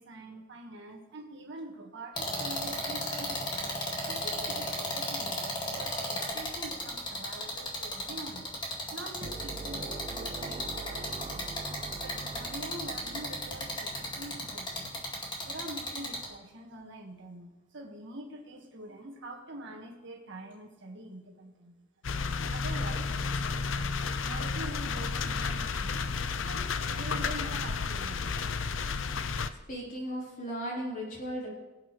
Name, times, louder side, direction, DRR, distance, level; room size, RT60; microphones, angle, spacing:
voice 1, 0.0-3.4 4.0-8.5 8.9-11.5 12.0-15.2 15.5-21.9 22.5-23.1 24.1-26.0 26.4-28.3, right 1 dB, 60° right, 1 dB, 1.8 m, -45 dB
sound 1, 2.2-16.3, left 1 dB, 25° left, 2.2 m, -34 dB
sound 2, 9.2-15.7, right 3 dB, 30° right, 0.5 m, -44 dB
sound 3, 22.0-29.5, left 5 dB, 70° left, 0.6 m, -32 dB
voice 2, 29.7-31.5, equal, 45° left, -4 dB, 4.1 m, -36 dB
23.5 x 8.0 x 3.3 m, 1.1 s
head